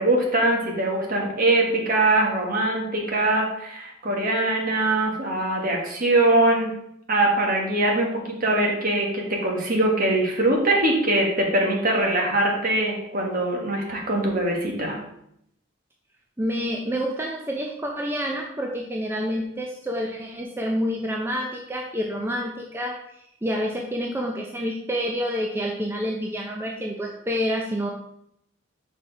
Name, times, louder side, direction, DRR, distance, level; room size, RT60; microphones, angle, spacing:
voice 1, 0.0-6.7 7.1-15.0, right 2 dB, 45° right, 0 dB, 1.5 m, -22 dB
voice 2, 16.4-27.9, equal, 10° right, 0 dB, 0.6 m, -28 dB
6.1 x 4.5 x 4.6 m, 0.75 s
head